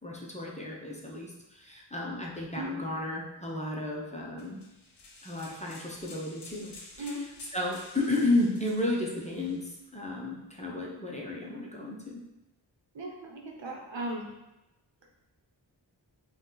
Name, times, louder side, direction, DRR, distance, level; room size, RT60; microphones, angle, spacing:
voice 1, 0.0-4.6 5.2-7.2 7.5-12.2, left 2 dB, 15° left, -3 dB, 0.8 m, -33 dB
sound 1, 4.4-9.8, left 2 dB, 60° left, 0.9 m, -51 dB
voice 2, 12.9-14.3, right 1 dB, 75° right, -1 dB, 0.9 m, -37 dB
5.0 x 2.4 x 3.9 m, 0.96 s
wide cardioid pair, 65°, 46 cm